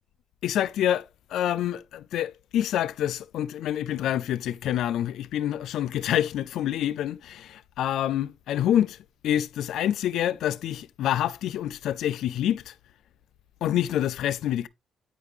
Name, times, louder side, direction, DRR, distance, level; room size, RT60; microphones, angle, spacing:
voice 1, 0.4-9.0 9.2-12.7 13.6-14.7, left 11 dB, 80° left, 0.3 m, -27 dB
9.0 x 4.9 x 3.3 m
cardioid pair, 90°, 0 cm